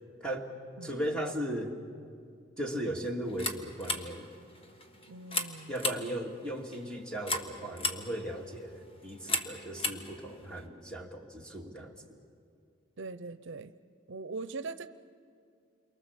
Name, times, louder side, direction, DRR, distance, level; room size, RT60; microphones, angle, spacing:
voice 1, 0.2-0.5 0.8-1.7 2.6-4.3 5.7-12.2, right 1 dB, 5° left, 1 dB, 2.3 m, -37 dB
sound 1, 3.2-10.7, left 2 dB, 30° left, 1.5 m, -38 dB
voice 2, 5.1-5.7 13.0-13.7 14.1-14.9, right 3 dB, 65° right, 12 dB, 0.7 m, -41 dB
29.0 x 23.5 x 7.4 m, 2.3 s
head